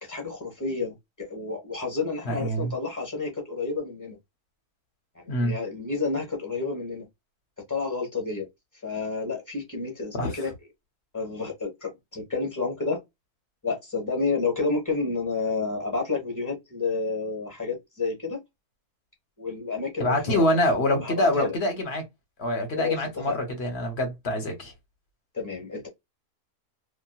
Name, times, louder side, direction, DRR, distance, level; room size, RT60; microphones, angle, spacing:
voice 1, 0.0-4.2 5.2-7.0 7.7-8.4 8.8-10.5 11.1-13.0 13.6-18.4 19.4-20.4 21.0-21.5 22.8-23.4 25.3-25.9, left 4 dB, 15° left, 1.0 m, -30 dB
voice 2, 2.2-2.7 5.3-5.6 10.1-10.5 20.0-22.0 22.4-24.7, left 1 dB, 50° left, 1.1 m, -25 dB
2.9 x 2.6 x 2.3 m
omnidirectional pair, 1.6 m